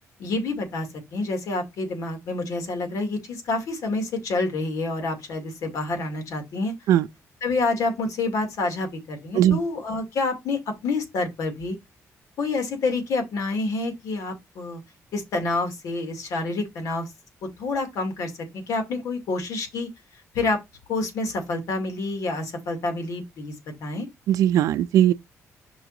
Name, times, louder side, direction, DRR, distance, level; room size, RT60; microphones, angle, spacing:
voice 1, 0.2-6.7 7.4-11.8 12.4-14.8 15.1-17.1 17.4-19.9 20.3-20.6 20.9-23.6 23.8-24.1, left 3 dB, 70° left, 2.2 m, -28 dB
voice 2, 24.3-25.1, right 11 dB, 85° right, 0.4 m, -18 dB
5.4 x 3.8 x 4.7 m
cardioid pair, 170°, 6 cm